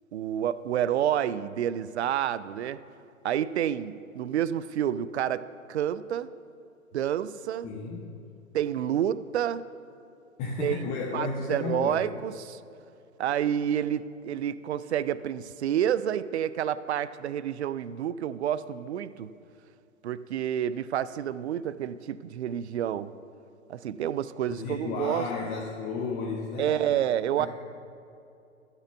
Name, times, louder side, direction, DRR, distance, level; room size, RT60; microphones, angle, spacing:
voice 1, 0.1-2.8 3.2-6.3 6.9-7.7 8.5-9.6 10.6-12.6 13.2-19.3 20.0-23.1 23.7-25.3 26.6-27.5, right 10 dB, 55° right, 16 dB, 0.5 m, -29 dB
voice 2, 7.6-8.1 10.4-12.1 24.5-27.0 27.4-27.5, left 4 dB, 20° left, -2 dB, 0.7 m, -33 dB
12.5 x 6.0 x 6.9 m, 2.6 s
figure-of-eight pair, 115°, 41 cm